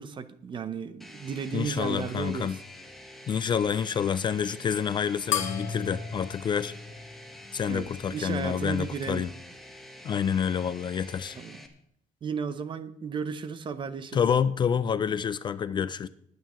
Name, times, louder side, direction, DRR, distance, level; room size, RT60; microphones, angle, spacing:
voice 1, 0.0-2.5 7.7-9.2 11.4-11.6 12.2-14.2, right 6 dB, 35° right, 13 dB, 0.7 m, -34 dB
sound 1, 1.0-11.7, left 1 dB, ahead, 1.1 m, -47 dB
voice 2, 1.5-2.6 3.3-6.7 7.5-9.3 10.0-11.4 14.1-16.1, left 7 dB, 30° left, 14 dB, 0.3 m, -28 dB
sound 2, 5.3-8.1, left 8 dB, 55° left, 1.1 m, -35 dB
19.5 x 9.4 x 3.1 m, 0.74 s
cardioid pair, 165°, 15 cm